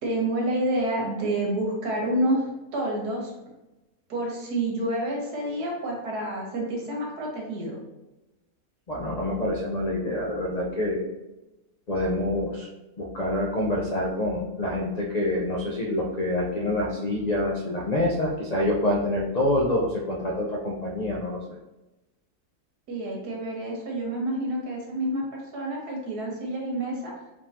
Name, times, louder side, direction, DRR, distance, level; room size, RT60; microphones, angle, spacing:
voice 1, 0.0-3.3 4.1-7.8 22.9-27.1, right 1 dB, 75° right, -1 dB, 1.7 m, -28 dB
voice 2, 8.9-11.0 11.9-12.7 13.0-21.4, left 1 dB, 85° left, -2 dB, 0.3 m, -26 dB
4.3 x 3.7 x 2.9 m, 1.0 s
omnidirectional pair, 1.7 m